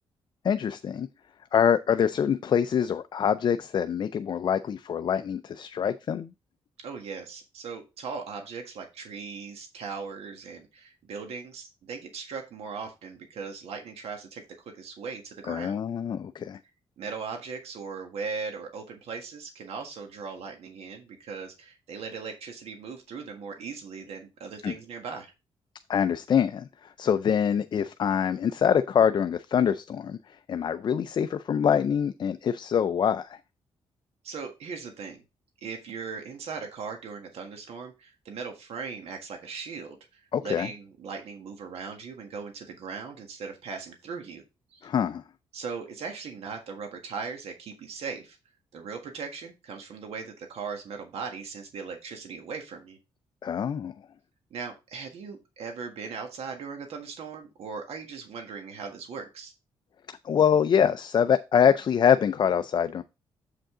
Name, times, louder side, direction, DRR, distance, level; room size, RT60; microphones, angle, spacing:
voice 1, 0.4-1.1 1.5-6.3 15.5-16.6 24.6-24.7 25.9-33.4 40.3-40.7 44.8-45.2 53.4-53.9 60.1-63.0, left 8 dB, 45° left, 0.4 m, -25 dB
voice 2, 6.8-15.8 17.0-25.3 34.2-35.2 35.6-44.4 44.7-44.8 45.5-48.4 48.7-53.0 54.5-59.5, right 5 dB, 80° right, 1.6 m, -39 dB
7.6 x 5.1 x 3.7 m
cardioid pair, 110°, 10 cm